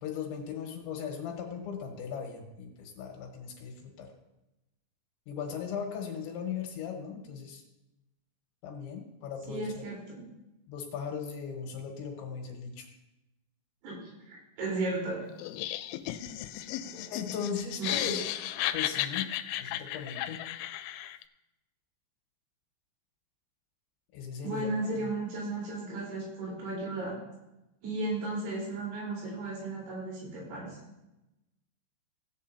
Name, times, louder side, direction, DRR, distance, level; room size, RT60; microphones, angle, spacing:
voice 1, 0.0-4.1 5.3-7.6 8.6-9.8 10.7-12.9 17.1-18.3 18.7-19.3 19.6-20.4 24.1-24.7 25.0-25.1, left 7 dB, 75° left, 2 dB, 3.4 m, -38 dB
voice 2, 9.5-10.3 13.8-14.0 14.3-15.2 16.9-17.0 17.8-18.1 24.4-27.2 27.8-30.8, right 2 dB, 85° right, -5 dB, 6.8 m, -35 dB
Laughter, 15.4-21.2, left 13 dB, 90° left, 3.2 m, -34 dB
17.0 x 8.6 x 2.8 m, 0.94 s
omnidirectional pair, 5.8 m